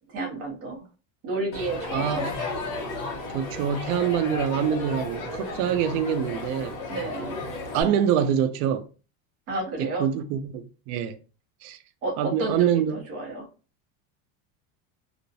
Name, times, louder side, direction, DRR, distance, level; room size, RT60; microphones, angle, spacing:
voice 1, 0.1-0.8 1.2-2.3 6.9-7.4 9.5-10.1 12.0-13.5, right 2 dB, 35° right, 0.6 m, -31 dB
Crowd, 1.5-7.8, left 3 dB, 50° left, 0.7 m, -33 dB
voice 2, 1.9-2.4 3.3-6.8 7.7-8.8 9.8-11.2 11.6-11.8 12.2-12.9, right 9 dB, 80° right, 0.5 m, -25 dB
2.5 x 2.0 x 2.5 m
cardioid pair, 175°, 44 cm